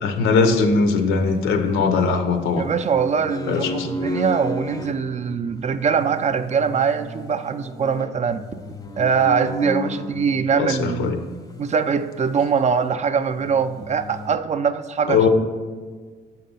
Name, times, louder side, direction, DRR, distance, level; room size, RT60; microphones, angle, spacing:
voice 1, 0.0-2.7 3.5-3.9 10.6-11.2 15.1-15.3, left 4 dB, 90° left, 6 dB, 0.7 m, -20 dB
sound 1, 0.8-2.0 2.5-4.9 5.5-10.5 11.4-12.6 12.9-13.0 13.4-14.3, left 1 dB, 20° left, 0.5 m, -33 dB
voice 2, 2.6-11.1 11.6-15.2, right 6 dB, 35° right, 11 dB, 0.3 m, -22 dB
6.6 x 4.1 x 5.5 m, 1.5 s
cardioid pair, 90°, 20 cm